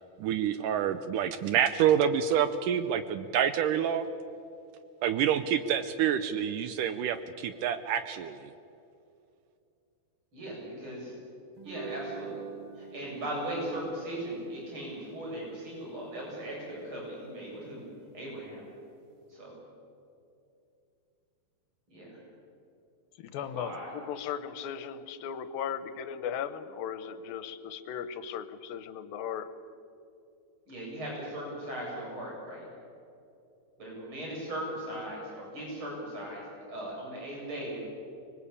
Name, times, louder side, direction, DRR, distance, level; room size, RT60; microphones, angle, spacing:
voice 1, 0.2-4.1 5.0-8.4, right 9 dB, 75° right, 11 dB, 2.1 m, -27 dB
voice 2, 10.3-11.1 11.6-12.4 12.8-17.8 18.1-18.6 19.3-19.5 21.9-22.2 23.3-23.9 30.7-32.7 33.8-37.8, right 1 dB, 30° right, -3 dB, 8.2 m, -38 dB
sound 1, 11.6-18.1, right 6 dB, 50° right, 1.8 m, -47 dB
voice 3, 23.2-29.5, left 8 dB, 75° left, 12 dB, 2.8 m, -37 dB
25.0 x 21.0 x 8.5 m, 2.6 s
omnidirectional pair, 4.3 m